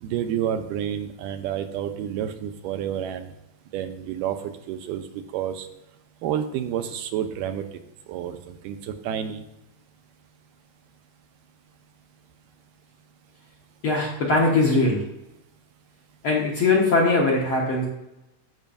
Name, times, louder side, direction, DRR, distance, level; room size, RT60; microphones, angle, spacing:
voice 1, 0.0-3.3 3.7-4.4 4.7-5.1 5.3-5.7 6.2-7.6 8.1-9.4, right 10 dB, 85° right, 8 dB, 2.3 m, -29 dB
voice 2, 13.8-15.0 16.2-17.8, left 3 dB, 60° left, -3 dB, 1.5 m, -21 dB
14.0 x 5.5 x 2.6 m, 0.92 s
omnidirectional pair, 3.8 m